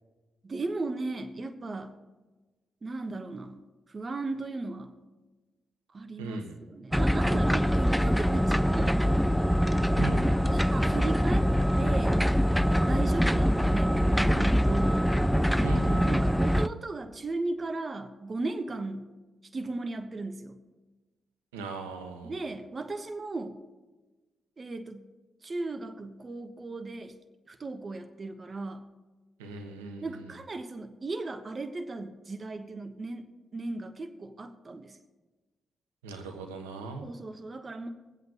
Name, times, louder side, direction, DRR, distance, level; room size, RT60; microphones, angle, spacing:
voice 1, 0.4-1.9 2.8-3.6 3.9-5.0 5.9-6.4 6.7-9.0 10.1-10.2 10.5-11.5 11.8-12.2 12.9-15.0 16.0-19.1 19.5-20.5 22.2-23.6 24.6-25.1 25.4-27.1 27.5-28.8 30.0-33.3 33.5-35.0 37.0-37.9, right 3 dB, 40° right, 8 dB, 1.2 m, -36 dB
voice 2, 6.2-6.6 10.0-10.3 15.6-16.3 21.5-22.3 29.4-30.3 36.0-37.1, right 3 dB, 90° right, 5 dB, 1.2 m, -38 dB
sound 1, 6.9-16.7, equal, ahead, 0.5 m, -24 dB
19.5 x 8.0 x 4.0 m, 1.2 s
hypercardioid pair, 40°, 0 cm